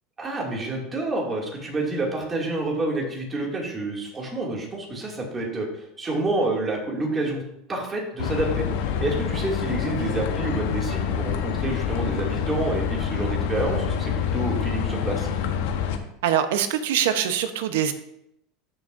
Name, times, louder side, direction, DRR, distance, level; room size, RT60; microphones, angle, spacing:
voice 1, 0.2-7.4 7.7-15.3, right 2 dB, 20° right, -1 dB, 2.4 m, -28 dB
sound 1, 8.2-16.0, left 8 dB, 80° left, 1.0 m, -27 dB
voice 2, 16.2-17.9, right 9 dB, 85° right, 9 dB, 0.9 m, -23 dB
12.5 x 6.2 x 2.6 m, 0.78 s
supercardioid pair, 135°, 0 cm